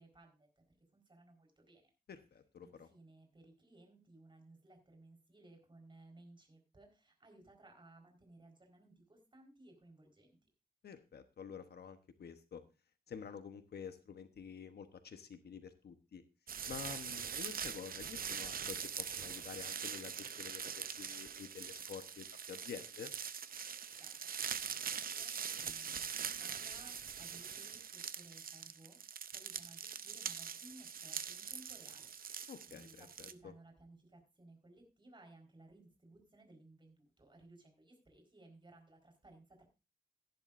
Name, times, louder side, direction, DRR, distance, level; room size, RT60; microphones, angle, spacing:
voice 1, 0.0-1.9 2.6-10.4 23.7-29.0 29.3-39.6, right 2 dB, 30° right, 2 dB, 4.4 m, -61 dB
voice 2, 2.1-2.9 10.8-12.6 13.1-16.2 16.7-23.1 32.5-33.5, left 7 dB, 75° left, 9 dB, 1.1 m, -49 dB
sound 1, 16.5-33.3, right 7 dB, 60° right, 0.6 m, -43 dB
15.0 x 10.5 x 2.6 m, 0.29 s
wide cardioid pair, 95°, 17 cm